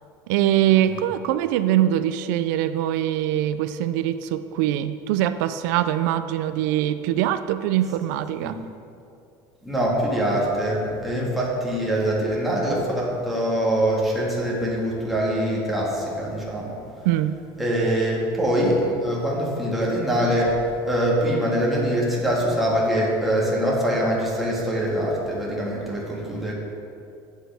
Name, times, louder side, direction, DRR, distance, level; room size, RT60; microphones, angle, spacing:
voice 1, 0.3-8.6 17.0-17.4, right 12 dB, 85° right, 12 dB, 0.4 m, -23 dB
voice 2, 9.6-16.8 17.6-20.6 20.8-26.5, equal, ahead, -6 dB, 1.7 m, -23 dB
11.0 x 8.1 x 3.4 m, 2.5 s
cardioid pair, 170°, 9 cm